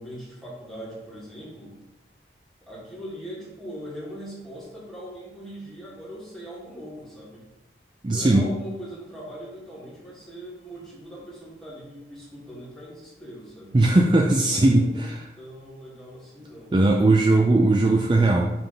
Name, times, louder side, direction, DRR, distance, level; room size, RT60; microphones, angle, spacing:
voice 1, 0.0-1.8 2.7-7.4 8.1-13.7 14.1-16.7, equal, ahead, -7 dB, 1.9 m, -40 dB
voice 2, 8.0-8.4 13.7-15.2 16.7-18.5, right 2 dB, 25° right, 1 dB, 0.4 m, -19 dB
5.7 x 3.6 x 5.1 m, 0.99 s
head